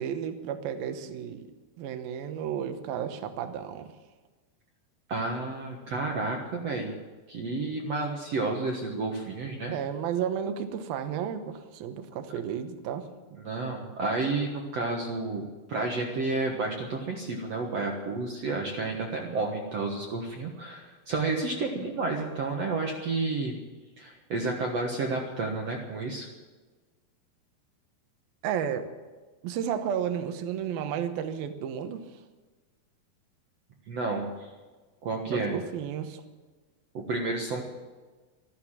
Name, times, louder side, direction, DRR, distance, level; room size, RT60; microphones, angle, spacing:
voice 1, 0.0-1.5 1.8-3.9 9.7-13.1 28.4-28.9 29.4-32.1 35.3-36.2, right 8 dB, 75° right, 8 dB, 2.8 m, -32 dB
voice 2, 5.1-6.9 7.3-9.7 13.4-15.4 15.7-23.6 24.0-26.3 33.9-34.5 35.0-35.5 36.9-37.6, right 3 dB, 55° right, 0 dB, 1.9 m, -31 dB
13.5 x 13.0 x 7.4 m, 1.3 s
omnidirectional pair, 4.6 m